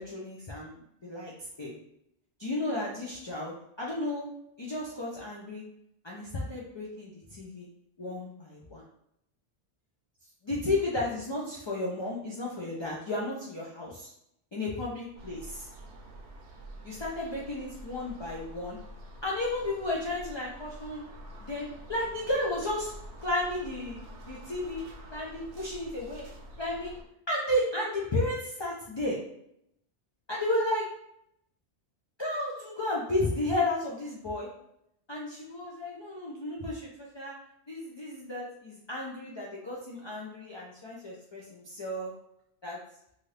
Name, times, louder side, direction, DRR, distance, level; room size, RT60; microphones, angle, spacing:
voice 1, 0.0-1.3 1.6-1.7 2.4-4.3 4.6-5.6 6.0-7.7 8.0-8.8 10.4-14.1 14.5-15.7 16.8-18.8 19.2-21.0 21.4-22.9 23.2-24.8 25.1-26.3 26.6-26.9 27.3-29.2 30.3-30.9 32.2-34.5 35.1-37.3 37.7-42.1 42.6-42.8, left 1 dB, 50° left, -4 dB, 0.3 m, -33 dB
sound 1, 15.1-27.0, right 1 dB, 90° right, 0.9 m, -47 dB
2.6 x 2.4 x 3.2 m, 0.77 s
omnidirectional pair, 1.1 m